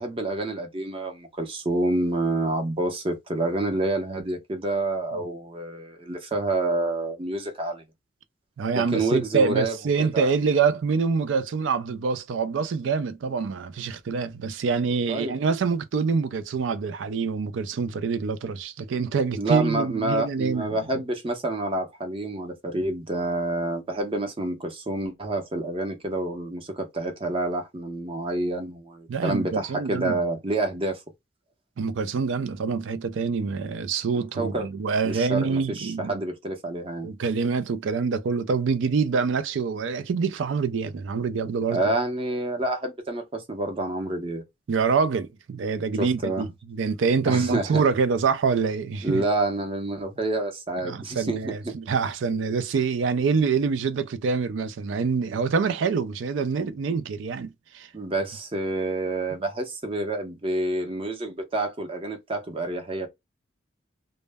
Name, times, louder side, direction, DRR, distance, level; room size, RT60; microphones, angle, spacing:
voice 1, 0.0-7.8 8.7-10.3 15.1-15.4 19.4-31.0 34.4-34.7 35.0-37.1 41.7-44.4 46.0-46.4 47.3-47.8 49.0-51.7 57.9-63.1, right 2 dB, 30° right, 0.6 m, -28 dB
voice 2, 8.6-20.8 29.1-30.2 31.8-36.2 37.0-41.9 44.7-49.3 50.8-57.9, right 5 dB, 65° right, 0.4 m, -26 dB
2.1 x 2.0 x 3.3 m
head